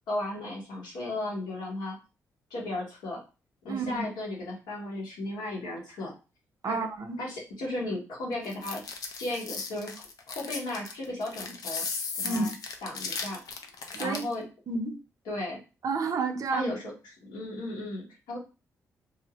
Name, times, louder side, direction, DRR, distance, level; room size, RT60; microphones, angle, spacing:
voice 1, 0.1-2.0 2.5-3.2 3.6-6.1 6.6-6.8 7.2-8.8 9.2-11.9 12.2-12.5 12.8-13.4 14.0-14.5 15.2-15.6 16.5-18.4, left 1 dB, 85° left, -3 dB, 1.1 m, -35 dB
voice 2, 3.7-4.1 6.6-7.2 12.2-12.5 13.9-14.2 14.7-15.0 15.8-16.7, right 4 dB, 55° right, 6 dB, 0.5 m, -30 dB
sound 1, 8.4-14.3, left 4 dB, 65° left, 0.5 m, -36 dB
2.6 x 2.0 x 2.8 m, 0.32 s
supercardioid pair, 55°, 7 cm